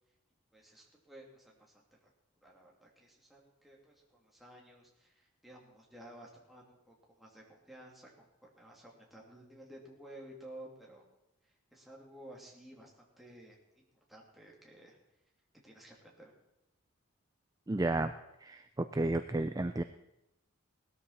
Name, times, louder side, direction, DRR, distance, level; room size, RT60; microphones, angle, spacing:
voice 1, 0.5-2.1 2.4-11.0 11.7-15.0 15.6-16.3, right 1 dB, ahead, -3 dB, 2.8 m, -54 dB
voice 2, 17.7-18.1 18.4-19.8, right 2 dB, 15° right, 9 dB, 0.4 m, -32 dB
18.5 x 13.0 x 4.3 m, 0.87 s
head